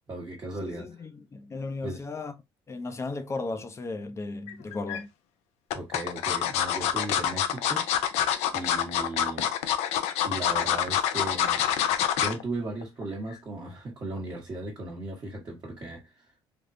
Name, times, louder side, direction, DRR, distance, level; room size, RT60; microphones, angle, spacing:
voice 1, 0.1-0.9 1.8-2.0 5.7-7.9 8.5-9.5 10.2-11.7 12.2-16.1, right 2 dB, 35° right, 1.1 m, -36 dB
voice 2, 0.6-2.3 2.7-5.1, left 3 dB, 25° left, 0.6 m, -35 dB
sound 1, 4.5-5.0 5.7-12.4 12.8-13.0 13.3-13.4, left 10 dB, 85° left, 0.5 m, -26 dB
3.5 x 2.3 x 2.6 m
cardioid pair, 95°, 11 cm